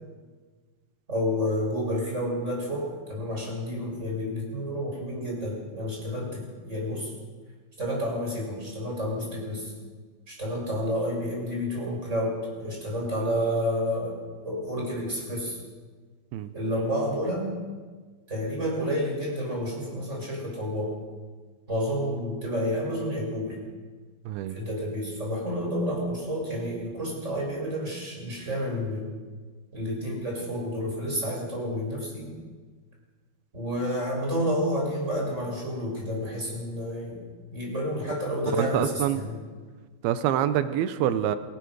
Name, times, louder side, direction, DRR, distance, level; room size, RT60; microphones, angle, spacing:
voice 1, 1.1-7.1 7.8-9.7 10.3-14.1 14.4-15.6 16.5-17.5 18.3-20.9 21.7-23.6 24.5-29.1 29.7-32.3 33.5-37.2 37.5-39.4, equal, 15° right, -2 dB, 7.2 m, -30 dB
voice 2, 24.3-24.6 38.6-39.2 40.0-41.4, right 11 dB, 85° right, 11 dB, 2.8 m, -26 dB
27.5 x 15.0 x 6.4 m, 1.5 s
omnidirectional pair, 4.4 m